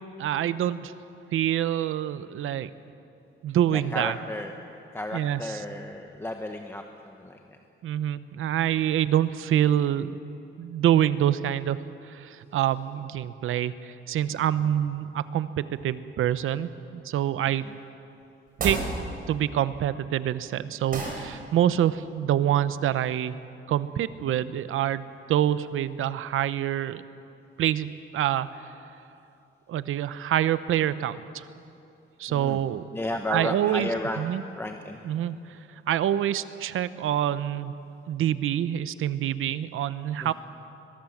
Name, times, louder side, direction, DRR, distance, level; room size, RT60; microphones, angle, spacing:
voice 1, 0.2-0.9 1.3-2.7 3.4-4.2 5.1-5.4 7.8-10.2 10.6-11.8 12.0-17.7 18.6-18.8 19.3-23.3 23.7-27.0 27.6-28.5 29.7-31.4 32.2-32.9 33.3-33.9 34.2-34.4 35.0-35.6 35.9-37.8 38.1-40.3, right 11 dB, 90° right, 14 dB, 0.8 m, -26 dB
voice 2, 3.7-4.5 4.9-7.6 14.6-14.7 17.6-17.7 32.3-32.6 32.9-34.2 34.6-35.0 40.2-40.3, left 1 dB, 10° left, 4 dB, 0.9 m, -33 dB
sound 1, 18.5-18.9 20.9-21.2, right 4 dB, 45° right, 5.3 m, -30 dB
22.0 x 22.0 x 7.3 m, 2.7 s
cardioid pair, 155°, 21 cm